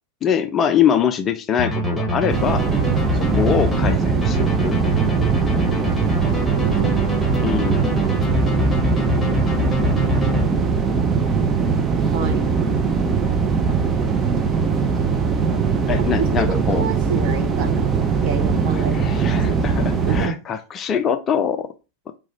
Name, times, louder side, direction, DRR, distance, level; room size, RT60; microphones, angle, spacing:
voice 1, 0.2-2.6 3.1-4.8 7.4-7.9 15.9-16.8 18.7-21.7, left 8 dB, 25° left, 0.5 m, -23 dB
sound 1, 1.6-10.9, left 1 dB, 10° left, 0.9 m, -25 dB
sound 2, 2.3-20.3, right 5 dB, 20° right, 0.6 m, -21 dB
voice 2, 3.3-3.7 6.0-7.4 12.0-12.5 15.9-16.1 16.4-19.0 19.3-19.8 20.0-20.4, right 5 dB, 45° right, 0.9 m, -29 dB
4.7 x 2.4 x 4.1 m
figure-of-eight pair, 90°, 0 cm